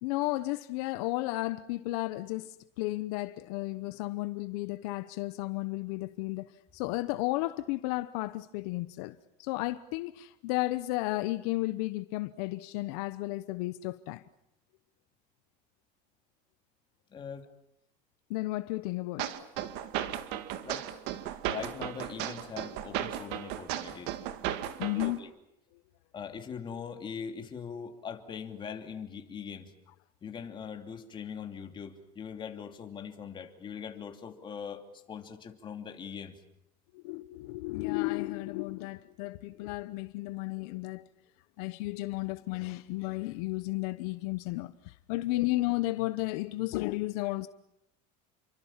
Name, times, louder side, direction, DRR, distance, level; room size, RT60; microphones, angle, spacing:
voice 1, 0.0-14.2 18.3-19.3 24.8-25.2 36.9-41.0 41.6-47.5, left 19 dB, 70° left, 1.0 m, -33 dB
voice 2, 17.1-17.5 20.6-20.8 21.4-24.2 24.9-25.3 26.1-29.7 30.2-36.3 45.3-45.4, left 7 dB, 25° left, 2.9 m, -41 dB
sound 1, 19.2-25.2, right 12 dB, 60° right, 2.1 m, -35 dB
29.5 x 24.0 x 7.4 m
cardioid pair, 150°, 20 cm